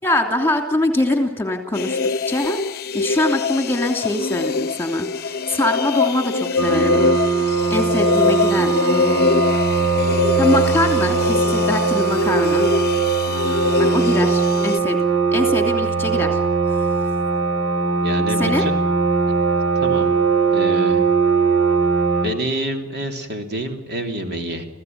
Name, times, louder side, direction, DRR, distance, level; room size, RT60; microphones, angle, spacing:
voice 1, 0.0-2.0 2.3-2.6 2.9-7.0 7.7-9.3 10.4-12.7 13.8-15.0 15.3-16.4 18.4-18.6, left 1 dB, 10° left, 5 dB, 3.0 m, -23 dB
sound 1, 1.7-14.8, left 4 dB, 50° left, 0.8 m, -23 dB
sound 2, 6.6-22.3, right 5 dB, 70° right, 4.0 m, -20 dB
voice 2, 18.0-18.8 19.7-20.1 20.5-21.0 22.2-24.6, right 1 dB, 55° right, 4 dB, 3.4 m, -27 dB
28.5 x 16.5 x 9.5 m, 0.87 s
head